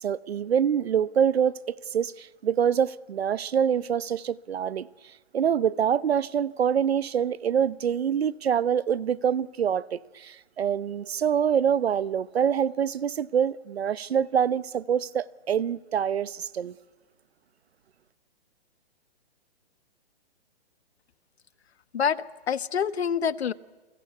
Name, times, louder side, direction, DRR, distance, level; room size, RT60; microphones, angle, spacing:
voice 1, 0.0-1.5 1.9-4.9 5.3-16.7, right 8 dB, 75° right, 1.0 m, -25 dB
voice 2, 21.9-23.5, left 7 dB, 85° left, 1.3 m, -27 dB
29.5 x 23.0 x 8.4 m
hypercardioid pair, 175°, 31 cm